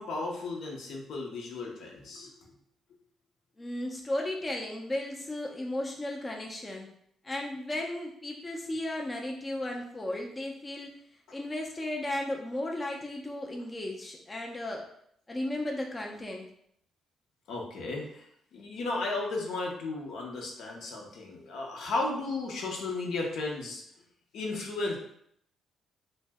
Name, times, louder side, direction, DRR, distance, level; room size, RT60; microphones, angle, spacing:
voice 1, 0.0-2.3 17.5-18.2 18.5-23.8 24.3-25.0, left 3 dB, 75° left, -1 dB, 0.7 m, -34 dB
voice 2, 3.6-6.9 7.2-10.9 11.3-14.9 15.3-16.5, left 1 dB, 20° left, 0 dB, 0.4 m, -35 dB
2.6 x 2.0 x 3.4 m, 0.69 s
cardioid pair, 90°, 0 cm